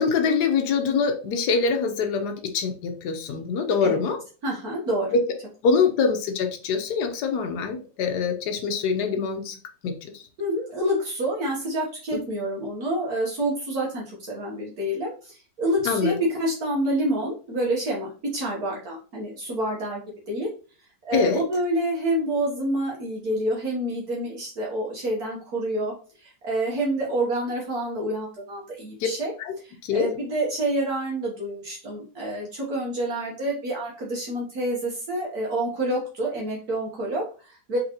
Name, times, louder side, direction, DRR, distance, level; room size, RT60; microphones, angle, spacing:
voice 1, 0.0-4.2 5.1-5.2 5.6-9.5 9.8-10.2 15.9-16.2 21.1-21.4 29.5-29.6 29.8-30.1, left 5 dB, 70° left, 5 dB, 1.3 m, -24 dB
voice 2, 4.4-5.2 10.4-20.0 20.3-20.5 21.0-25.9 26.2-29.3 29.6-37.8, right 1 dB, 60° right, -3 dB, 1.6 m, -28 dB
3.9 x 3.8 x 2.9 m, 0.37 s
omnidirectional pair, 1.9 m